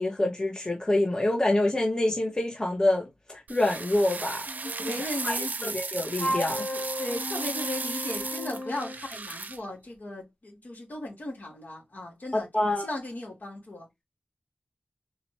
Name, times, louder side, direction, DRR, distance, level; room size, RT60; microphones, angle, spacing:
voice 1, 0.0-5.0 5.2-5.3 5.6-6.6 12.3-12.8, left 1 dB, 25° left, 1.3 m, -26 dB
sound 1, 3.5-9.6, right 4 dB, 70° right, 0.5 m, -35 dB
voice 2, 4.5-5.8 6.7-14.0, left 1 dB, 70° left, 2.7 m, -37 dB
Wind instrument woodwind instrument, 6.2-9.0, equal, 50° left, 1.5 m, -34 dB
4.1 x 3.0 x 3.2 m
wide cardioid pair, 70°, 3 cm